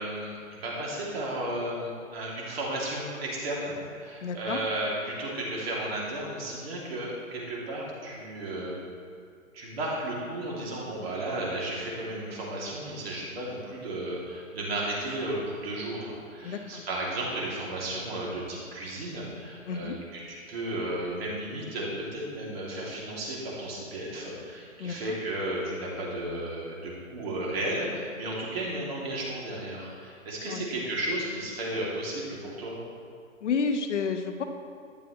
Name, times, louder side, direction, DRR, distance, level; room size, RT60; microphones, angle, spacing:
voice 1, 0.0-8.7 9.5-32.8, right 1 dB, 45° right, -4 dB, 2.8 m, -34 dB
voice 2, 4.2-4.6 16.4-16.8 19.7-20.0 24.8-25.0 30.5-30.6 33.4-34.4, left 5 dB, 55° left, 5 dB, 1.1 m, -30 dB
12.0 x 10.0 x 3.2 m, 2.3 s
hypercardioid pair, 155°, 41 cm